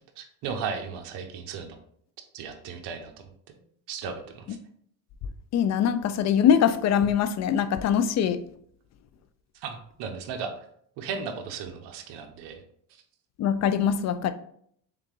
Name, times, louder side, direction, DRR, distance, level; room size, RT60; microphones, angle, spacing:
voice 1, 0.2-1.8 2.3-3.1 3.9-4.6 9.6-10.5 11.0-12.6, right 6 dB, 70° right, 5 dB, 0.8 m, -35 dB
voice 2, 5.5-8.4 13.4-14.3, left 8 dB, 40° left, 12 dB, 0.4 m, -23 dB
3.6 x 3.5 x 3.1 m, 0.65 s
supercardioid pair, 90°, 44 cm